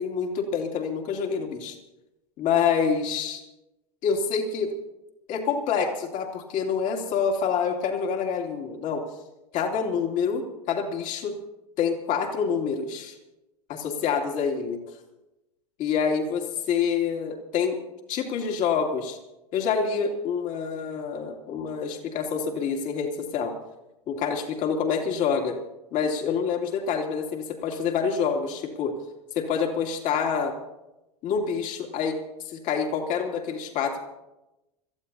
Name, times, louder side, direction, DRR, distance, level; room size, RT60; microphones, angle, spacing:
voice 1, 0.0-1.8 2.4-3.4 4.0-4.7 5.3-9.0 9.5-11.3 11.8-13.2 13.7-14.8 15.8-16.4 16.7-17.8 18.1-19.2 19.5-23.5 24.1-25.6 25.9-28.9 29.3-30.5 31.2-32.2 32.4-34.0, left 6 dB, 40° left, 2 dB, 2.7 m, -27 dB
27.0 x 14.5 x 2.8 m, 0.98 s
figure-of-eight pair, 85°, 20 cm